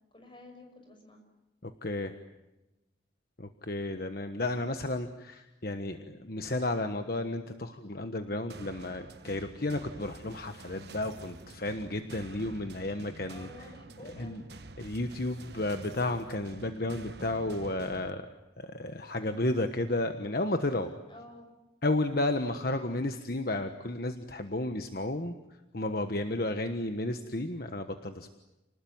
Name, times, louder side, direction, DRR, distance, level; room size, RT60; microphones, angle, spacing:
voice 1, 0.1-1.2 13.2-14.5 21.1-21.6, left 1 dB, 25° left, 4 dB, 6.2 m, -51 dB
voice 2, 1.6-2.1 3.4-13.7 14.2-14.4 14.8-18.3 18.6-20.9 21.8-25.3 25.7-28.3, left 2 dB, 55° left, 7 dB, 1.3 m, -32 dB
sound 1, 8.5-18.1, right 2 dB, 65° right, 1.2 m, -48 dB
30.0 x 20.0 x 9.4 m, 1.0 s
head